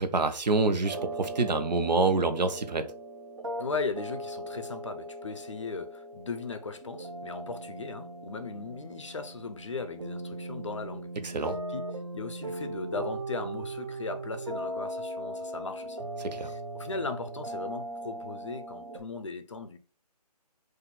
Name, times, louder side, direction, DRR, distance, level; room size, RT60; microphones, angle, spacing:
voice 1, 0.0-2.8 11.2-11.6 16.2-16.5, right 3 dB, 85° right, 0.9 m, -27 dB
sound 1, 0.8-19.0, right 1 dB, 50° right, 0.6 m, -39 dB
voice 2, 3.6-11.1 11.4-16.0 16.3-19.8, left 4 dB, 45° left, 0.5 m, -38 dB
4.1 x 2.6 x 4.1 m
hypercardioid pair, 175°, 21 cm